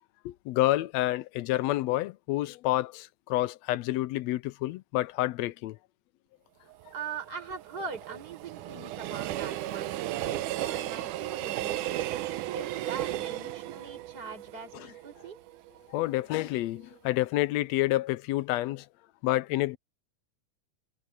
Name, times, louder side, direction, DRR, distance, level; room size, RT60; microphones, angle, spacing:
voice 1, 0.2-5.8 14.7-14.9 15.9-18.9 19.2-19.8, left 16 dB, 80° left, 1.5 m, -29 dB
Train, 6.7-15.8 16.2-16.3, right 14 dB, 75° right, 2.2 m, -35 dB
voice 2, 6.9-10.0 10.3-11.8 12.5-15.4, right 5 dB, 30° right, 6.5 m, -41 dB
omnidirectional pair, 3.6 m